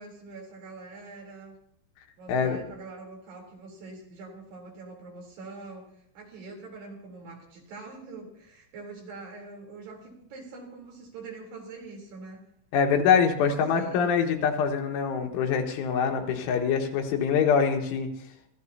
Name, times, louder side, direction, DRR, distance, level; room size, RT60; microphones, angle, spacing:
voice 1, 0.0-1.6 2.2-12.4 13.4-14.1, right 3 dB, 55° right, 0 dB, 5.3 m, -44 dB
voice 2, 12.7-18.1, left 6 dB, 80° left, 3 dB, 3.7 m, -24 dB
26.0 x 14.5 x 2.8 m, 0.69 s
omnidirectional pair, 5.7 m